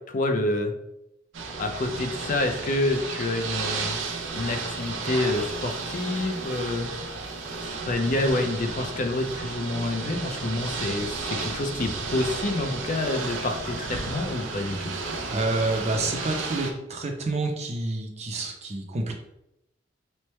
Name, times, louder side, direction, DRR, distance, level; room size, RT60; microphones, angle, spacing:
voice 1, 0.1-0.7 1.6-4.0 4.3-6.9 7.6-14.9, left 2 dB, 45° left, 5 dB, 0.5 m, -28 dB
Ocean / Boat Water vehicle, 1.3-16.7, right 4 dB, 90° right, 0.5 m, -33 dB
voice 2, 15.3-19.1, right 2 dB, 35° right, 2 dB, 0.6 m, -28 dB
3.2 x 2.1 x 4.2 m, 0.85 s
head